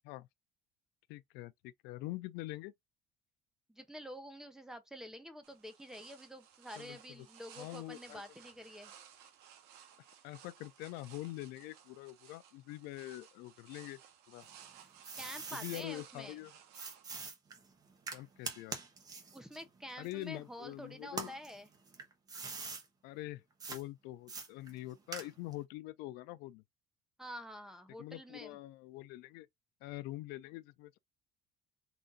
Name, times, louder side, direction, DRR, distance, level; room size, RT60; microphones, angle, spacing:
voice 1, 1.1-2.7 6.8-7.3 7.6-8.2 10.2-14.0 14.3-14.5 15.5-16.5 18.1-18.8 20.0-21.3 23.0-26.6 28.0-29.5 29.8-31.0, left 17 dB, 75° left, 0.4 m, -45 dB
voice 2, 3.7-8.9 15.2-16.4 19.3-21.7 27.2-28.6, equal, 5° right, 0.6 m, -48 dB
sound 1, 5.4-17.3, right 9 dB, 85° right, 1.0 m, -58 dB
sound 2, 14.4-15.8 16.7-20.6 21.1-22.8 23.6-23.8 24.3-25.6, right 4 dB, 25° right, 0.9 m, -44 dB
4.0 x 2.5 x 3.8 m
cardioid pair, 175°, 17 cm